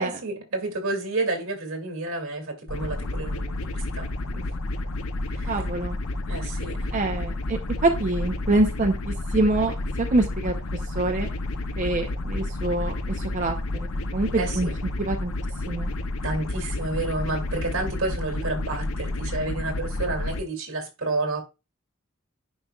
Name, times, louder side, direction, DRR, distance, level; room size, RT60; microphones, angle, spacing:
voice 1, 0.0-4.5 5.4-5.6 6.3-6.9 14.3-14.7 16.2-21.4, right 2 dB, 80° right, 2.4 m, -30 dB
sound 1, 2.7-20.4, left 2 dB, 85° left, 0.7 m, -30 dB
voice 2, 5.5-6.0 6.9-10.5 10.9-11.3 11.8-13.5 14.1-14.7 15.0-15.3 15.7-15.9, right 2 dB, 40° right, 0.7 m, -25 dB
10.0 x 5.0 x 2.3 m
head